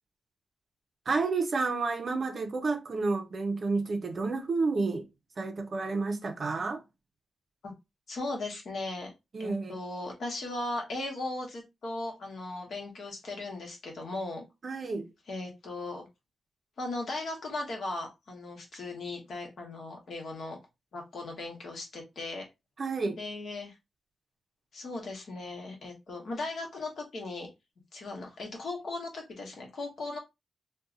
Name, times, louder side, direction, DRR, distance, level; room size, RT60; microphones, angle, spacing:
voice 1, 1.1-5.1 5.4-6.8 9.3-9.8 14.6-15.1 22.8-23.2, right 3 dB, 35° right, 0.6 m, -30 dB
voice 2, 8.1-9.1 9.4-14.4 15.3-16.0 16.8-20.6 20.9-22.5 23.1-23.8 24.7-27.5 27.9-30.2, left 2 dB, 55° left, 1.1 m, -37 dB
2.7 x 2.2 x 3.7 m
wide cardioid pair, 165°, 0 cm